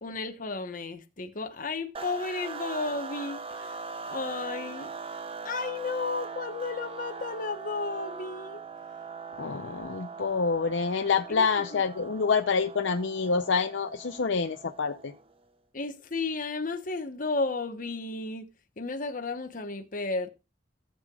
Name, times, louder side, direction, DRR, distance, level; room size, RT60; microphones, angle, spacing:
voice 1, 0.0-3.8 4.1-4.9 5.4-8.6 11.3-11.8 15.7-18.5 18.8-20.3, left 3 dB, 50° left, 1.0 m, -33 dB
sound 1, 1.9-15.3, right 4 dB, 30° right, 0.7 m, -41 dB
voice 2, 9.4-15.1, left 5 dB, 85° left, 0.6 m, -27 dB
16.0 x 7.8 x 2.3 m
head